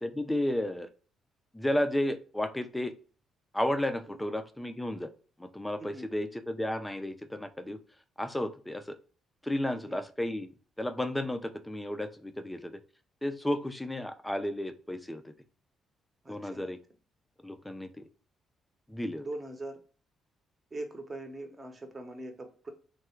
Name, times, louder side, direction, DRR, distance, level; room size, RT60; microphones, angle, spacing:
voice 1, 0.0-0.9 1.5-2.9 3.5-5.1 5.4-7.8 8.2-9.0 9.4-10.5 10.8-12.8 13.2-15.3 16.3-16.8 17.4-18.0 18.9-19.3, left 1 dB, 10° left, 9 dB, 0.5 m, -33 dB
voice 2, 16.2-16.7 19.2-19.8 20.7-22.7, right 2 dB, 25° right, 5 dB, 0.9 m, -42 dB
3.6 x 2.3 x 4.4 m, 0.38 s
cardioid pair, 90°, 0 cm